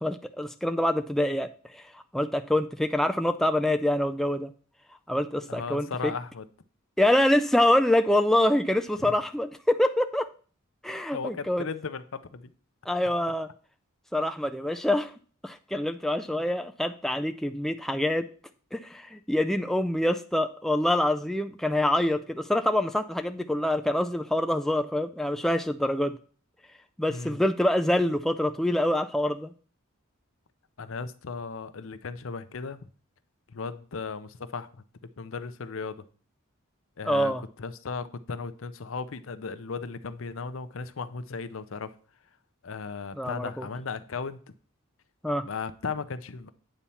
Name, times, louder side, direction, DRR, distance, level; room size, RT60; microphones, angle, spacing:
voice 1, 0.0-1.5 1.7-4.5 5.1-6.1 7.0-10.3 10.8-11.6 12.9-13.5 14.1-15.1 15.4-18.2 18.7-26.2 27.0-29.5 37.0-37.4 43.2-43.7 45.2-45.5, left 1 dB, ahead, 7 dB, 0.3 m, -25 dB
voice 2, 5.5-6.5 9.0-9.1 11.1-12.5 27.1-27.4 30.8-32.8 33.5-34.7 35.2-36.0 37.0-37.3 37.6-41.9 42.6-44.4 45.4-46.5, left 4 dB, 65° left, 13 dB, 0.6 m, -36 dB
8.9 x 4.3 x 6.9 m, 0.41 s
head